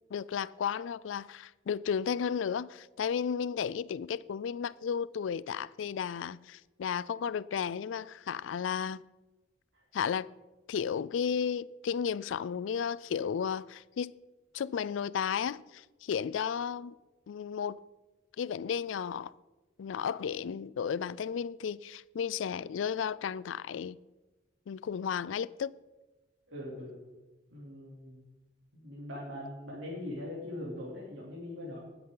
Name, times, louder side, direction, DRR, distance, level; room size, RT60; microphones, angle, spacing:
voice 1, 0.1-9.0 9.9-10.3 10.7-14.1 14.5-17.0 17.3-17.8 18.4-19.3 19.8-24.0 24.7-25.7, left 7 dB, 85° left, 0.4 m, -33 dB
voice 2, 26.5-27.0 27.5-28.2 28.7-31.8, left 1 dB, 75° right, 3.1 m, -41 dB
19.5 x 7.9 x 3.9 m
head